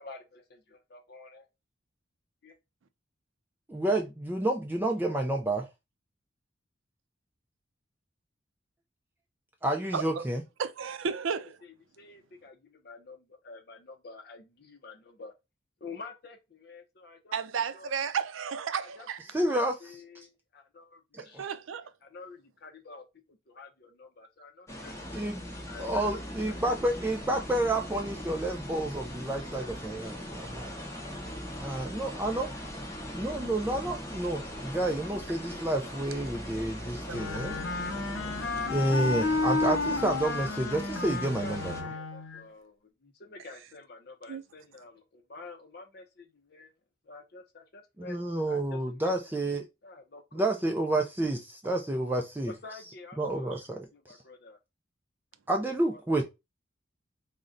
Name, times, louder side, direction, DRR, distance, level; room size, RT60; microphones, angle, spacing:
voice 1, 0.0-1.5 2.4-2.6 11.6-15.3 15.8-17.4 17.7-17.9 18.8-19.1 19.4-21.4 22.0-26.2 41.3-46.7 47.0-48.2 48.5-49.1 49.8-50.4 52.5-54.6 55.9-56.2, left 3 dB, 55° left, 0.6 m, -49 dB
voice 2, 3.7-5.7 9.6-10.4 19.3-19.8 21.2-21.5 25.1-25.4 25.8-30.7 31.6-32.5 33.1-37.5 38.7-41.7 48.0-49.7 50.3-52.5 53.2-54.2 55.5-56.2, right 1 dB, 10° right, 0.3 m, -30 dB
voice 3, 9.9-10.3 10.6-11.6 17.3-19.3 21.2-21.9 36.9-37.4 44.3-44.4, right 6 dB, 90° right, 0.5 m, -33 dB
sound 1, 24.7-41.8, equal, 15° left, 0.8 m, -40 dB
Wind instrument woodwind instrument, 37.1-42.4, left 3 dB, 90° left, 0.7 m, -32 dB
3.8 x 2.1 x 3.7 m
head